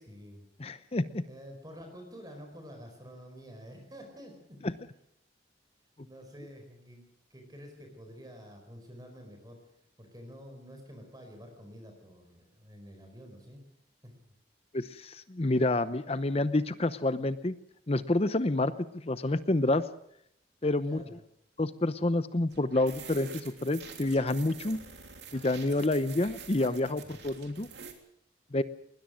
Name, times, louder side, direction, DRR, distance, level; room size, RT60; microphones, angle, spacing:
voice 1, 0.1-0.4 1.3-4.6 6.0-7.0 7.3-9.6 10.0-13.6 14.0-14.2 20.9-21.2 27.1-27.2, equal, 20° right, 4 dB, 4.6 m, -48 dB
voice 2, 0.6-1.2 4.6-4.7 14.7-17.5 17.9-19.8 20.6-21.0 21.6-24.8 25.3-27.7 28.5-28.6, left 2 dB, 35° left, 13 dB, 0.8 m, -28 dB
sound 1, 22.5-27.9, right 5 dB, 70° right, 3.3 m, -47 dB
21.0 x 20.5 x 6.4 m, 0.73 s
head